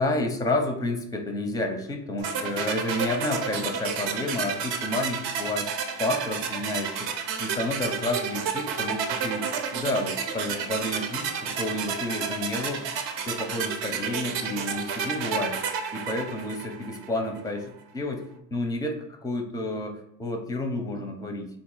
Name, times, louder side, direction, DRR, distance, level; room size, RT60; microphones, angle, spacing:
voice 1, 0.0-7.1 7.4-12.9 13.3-15.6 15.9-18.2 18.5-21.5, left 2 dB, 10° left, 5 dB, 0.5 m, -30 dB
sound 1, 2.2-17.1, right 6 dB, 55° right, 0.7 m, -31 dB
4.0 x 2.5 x 3.8 m, 0.78 s
supercardioid pair, 110°, 45 cm